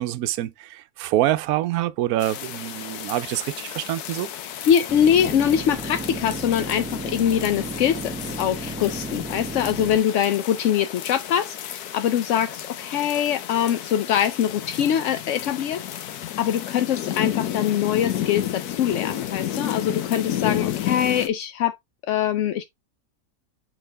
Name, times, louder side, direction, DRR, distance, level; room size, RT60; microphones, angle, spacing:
voice 1, 0.0-4.3, right 14 dB, 80° right, 1.1 m, -26 dB
sound 1, 2.2-21.3, left 11 dB, 80° left, 1.2 m, -32 dB
voice 2, 4.6-16.1 16.4-21.8 22.0-22.6, left 9 dB, 65° left, 0.8 m, -23 dB
sound 2, 4.9-10.0, right 1 dB, 10° right, 0.4 m, -34 dB
6.3 x 4.4 x 3.3 m
omnidirectional pair, 1.6 m